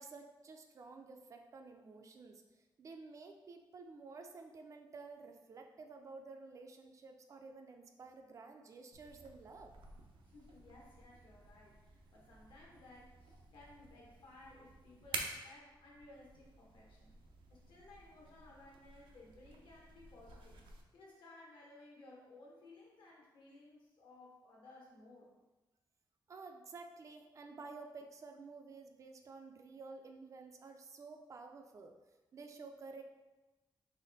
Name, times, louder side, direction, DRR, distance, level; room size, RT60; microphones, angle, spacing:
voice 1, 0.0-2.4 2.8-9.7 26.3-31.9 32.3-33.0, right 4 dB, 40° right, 4 dB, 0.4 m, -52 dB
sound 1, 8.9-20.8, right 3 dB, 85° right, 0.6 m, -51 dB
voice 2, 10.2-17.1 17.5-20.6 20.9-25.3, left 2 dB, 75° left, -3 dB, 1.3 m, -58 dB
4.2 x 3.1 x 4.0 m, 1.1 s
wide cardioid pair, 180°, 8 cm